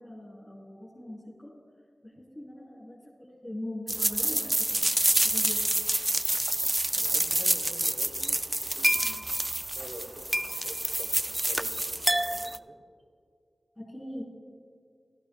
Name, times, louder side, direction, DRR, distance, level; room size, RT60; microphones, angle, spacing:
voice 1, 0.0-1.5 2.0-5.6 13.7-14.2, left 1 dB, 15° left, -7 dB, 3.3 m, -42 dB
sound 1, 3.9-12.6, right 1 dB, 20° right, 0.3 m, -27 dB
voice 2, 6.9-8.4 8.8-9.4 9.7-10.1 10.4-12.7, right 2 dB, 70° right, 2 dB, 1.1 m, -47 dB
16.5 x 13.5 x 2.3 m, 2.4 s
wide cardioid pair, 65°, 0 cm